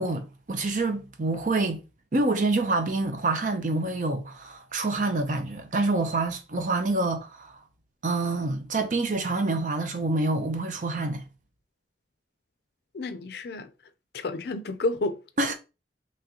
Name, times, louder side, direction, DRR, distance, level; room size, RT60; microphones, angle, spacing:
voice 1, 0.0-1.8 2.1-7.6 8.0-11.2 15.4-15.5, right 2 dB, 45° right, 0.6 m, -27 dB
voice 2, 12.9-13.7 14.1-15.2, left 2 dB, 65° left, 0.4 m, -30 dB
3.6 x 3.1 x 2.9 m
head